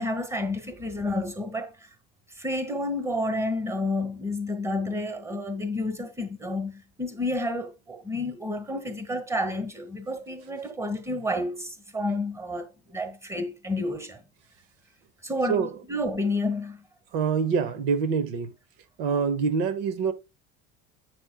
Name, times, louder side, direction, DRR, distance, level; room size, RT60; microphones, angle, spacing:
voice 1, 0.0-1.9 2.4-14.2 15.2-16.8, left 1 dB, 10° right, 1.3 m, -30 dB
voice 2, 17.1-18.5 19.0-20.1, right 6 dB, 80° right, 1.1 m, -25 dB
7.8 x 6.2 x 2.3 m
supercardioid pair, 115°, 29 cm